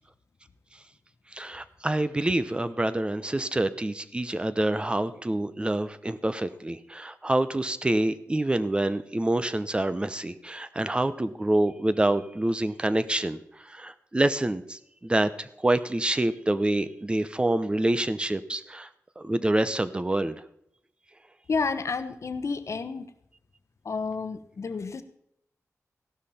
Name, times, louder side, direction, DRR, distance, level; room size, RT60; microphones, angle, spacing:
voice 1, 1.3-18.9 19.2-20.4, right 1 dB, 15° right, 13 dB, 0.7 m, -27 dB
voice 2, 21.5-23.1 23.8-25.0, left 4 dB, 55° left, 10 dB, 1.0 m, -30 dB
15.5 x 12.0 x 4.3 m, 0.75 s
wide cardioid pair, 125°, 6 cm